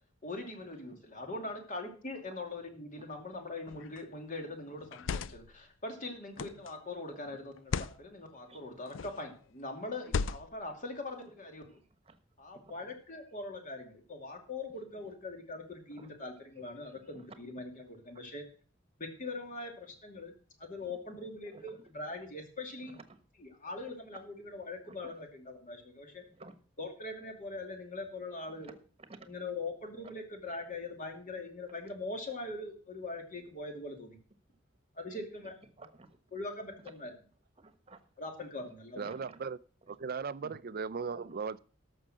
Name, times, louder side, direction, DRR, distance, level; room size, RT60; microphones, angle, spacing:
voice 1, 0.2-11.8 12.4-18.4 19.0-20.3 20.6-23.0 23.4-26.2 26.8-28.7 29.3-34.2 35.0-35.5 36.3-37.1 38.2-39.2 40.4-40.5, left 2 dB, 40° left, 2.6 m, -42 dB
sound 1, 3.7-4.0 4.8-5.6 6.4-6.7 7.6-8.0 8.9-9.3 10.0-10.7, left 5 dB, 75° left, 0.4 m, -36 dB
voice 2, 8.4-8.8 10.0-10.1 12.5-12.9 15.0-15.1 15.9-16.1 17.1-17.3 17.6-17.7 18.1-18.3 20.8-21.2 21.5-21.8 22.8-23.2 24.8-25.1 26.2-26.6 28.5-28.7 29.0-29.3 35.6-36.2 37.6-38.0 38.4-38.6 39.0-39.4 39.8-39.9 41.0-41.4, right 2 dB, 30° right, 1.2 m, -54 dB
voice 3, 39.0-39.6 39.9-41.6, right 5 dB, 50° right, 0.5 m, -37 dB
13.0 x 6.4 x 6.2 m
head